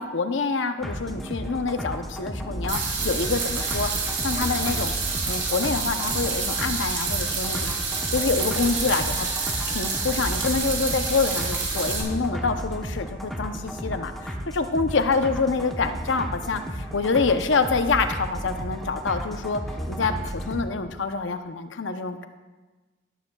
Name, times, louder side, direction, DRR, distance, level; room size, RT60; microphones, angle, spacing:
voice 1, 0.0-3.9 4.2-4.9 5.2-7.7 8.1-9.3 9.7-19.6 19.9-22.3, left 4 dB, 75° left, 8 dB, 0.7 m, -26 dB
sound 1, 0.8-20.6, equal, ahead, 0.9 m, -34 dB
sound 2, 2.7-12.0, right 4 dB, 85° right, 3.1 m, -28 dB
13.0 x 12.0 x 2.3 m, 1.2 s
head